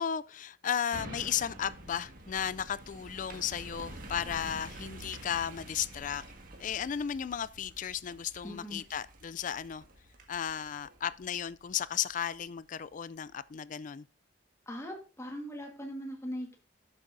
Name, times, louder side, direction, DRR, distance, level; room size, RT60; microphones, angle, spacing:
voice 1, 0.0-6.2 6.6-9.8 10.3-14.0, left 8 dB, 45° left, 0.3 m, -34 dB
sound 1, 0.9-12.4 12.8-12.9, right 1 dB, 50° right, 1.7 m, -48 dB
voice 2, 8.4-8.8 14.7-16.6, equal, 15° left, 1.6 m, -40 dB
12.0 x 7.6 x 2.6 m
head